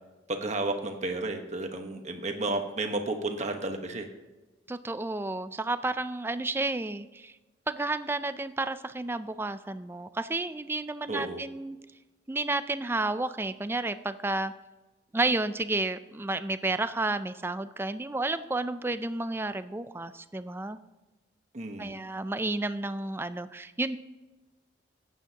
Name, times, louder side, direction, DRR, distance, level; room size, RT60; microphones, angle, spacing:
voice 1, 0.3-4.1 11.1-11.4 21.5-21.9, right 2 dB, 40° right, 5 dB, 1.2 m, -32 dB
voice 2, 4.7-7.3 7.7-11.8 12.3-14.5 15.1-20.8 21.8-24.0, right 2 dB, 10° right, 12 dB, 0.4 m, -31 dB
14.0 x 9.3 x 2.9 m, 1.1 s
head